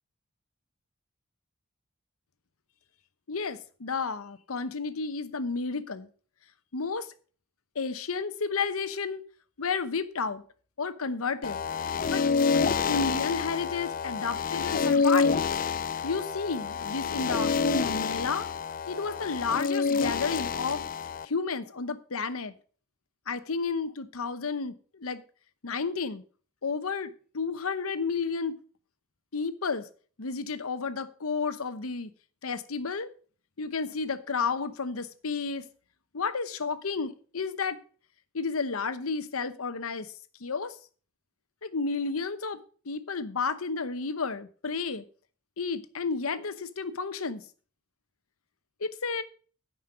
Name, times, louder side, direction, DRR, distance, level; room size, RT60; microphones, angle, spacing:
voice 1, 3.3-6.1 6.7-7.1 7.7-9.2 9.6-10.4 10.8-11.6 12.1-12.2 12.9-15.4 16.0-18.5 18.9-20.8 21.2-22.5 23.3-25.2 25.6-26.2 26.6-28.6 29.3-29.9 30.2-32.1 32.4-33.1 33.6-35.6 36.1-37.8 38.3-40.1 40.4-40.7 41.6-45.0 45.6-47.5 48.8-49.2, left 4 dB, 90° left, 0.9 m, -31 dB
sound 1, 11.4-21.3, left 5 dB, 40° left, 0.3 m, -28 dB
9.7 x 5.5 x 6.7 m
head